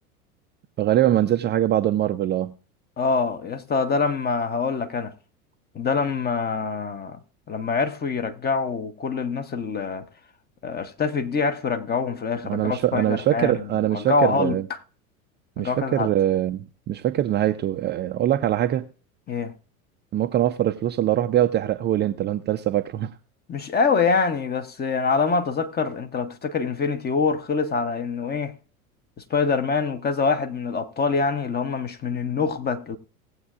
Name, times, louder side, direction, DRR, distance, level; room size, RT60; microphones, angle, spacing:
voice 1, 0.8-2.5 12.4-14.6 15.6-18.9 20.1-23.1, right 12 dB, 25° right, 0.5 m, -23 dB
voice 2, 3.0-5.1 5.7-7.2 7.5-10.0 10.6-14.8 15.6-16.1 19.3-19.5 23.5-28.5 29.3-33.0, left 5 dB, 20° left, 1.0 m, -25 dB
19.0 x 7.8 x 2.5 m
figure-of-eight pair, 80°, 43 cm